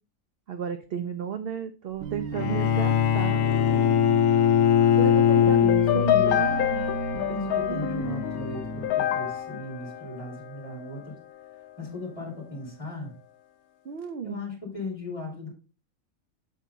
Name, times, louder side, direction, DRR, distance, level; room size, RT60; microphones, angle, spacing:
voice 1, 0.5-3.4 5.0-5.6 5.9-6.9 7.7-8.2 13.8-14.4, right 6 dB, 60° right, 9 dB, 0.6 m, -33 dB
sound 1, 2.0-8.9, right 5 dB, 80° right, 1.4 m, -35 dB
Bowed string instrument, 2.3-6.4, left 9 dB, 70° left, 1.0 m, -21 dB
voice 2, 5.3-6.6 7.1-11.2 11.8-13.1 14.2-15.5, left 3 dB, 20° left, -1 dB, 2.9 m, -37 dB
sound 2, 5.7-11.0, left 12 dB, 90° left, 1.1 m, -28 dB
7.6 x 4.6 x 4.0 m, 0.34 s
omnidirectional pair, 1.5 m